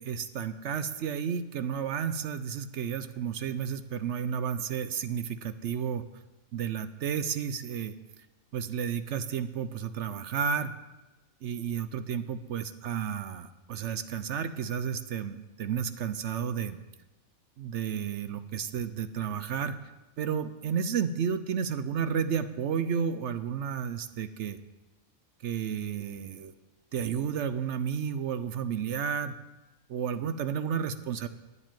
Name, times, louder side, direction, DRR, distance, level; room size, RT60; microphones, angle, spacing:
voice 1, 0.0-6.0 6.5-8.0 8.5-10.7 11.4-16.8 17.6-19.8 20.2-24.6 25.4-26.5 26.9-29.4 29.9-31.3, right 7 dB, 65° right, 12 dB, 0.8 m, -32 dB
9.7 x 7.4 x 9.1 m, 1.1 s
omnidirectional pair, 1.5 m